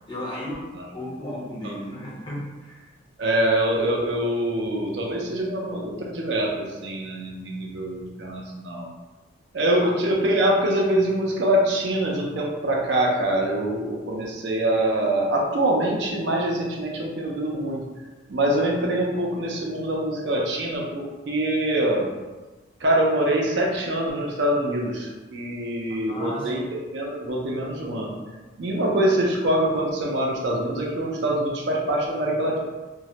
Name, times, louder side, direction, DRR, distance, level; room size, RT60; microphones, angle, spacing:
voice 1, 0.1-0.7 0.9-2.9 9.8-9.9 26.1-26.7, left 1 dB, 25° left, -6 dB, 0.6 m, -34 dB
voice 2, 3.2-8.8 9.5-17.8 18.3-22.1 22.8-28.1 28.6-32.6, right 1 dB, 65° right, -2 dB, 0.4 m, -24 dB
2.2 x 2.0 x 2.7 m, 1.2 s
head